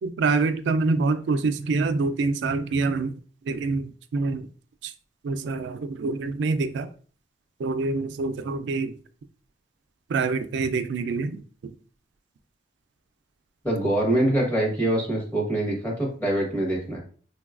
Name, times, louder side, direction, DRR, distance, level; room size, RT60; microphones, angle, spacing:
voice 1, 0.0-3.1 3.5-4.5 4.8-4.9 5.2-6.9 7.6-9.0 10.1-11.7, right 3 dB, 80° right, 10 dB, 0.3 m, -26 dB
voice 2, 13.6-17.0, right 1 dB, 10° left, -3 dB, 0.9 m, -24 dB
3.9 x 2.2 x 2.3 m, 0.41 s
head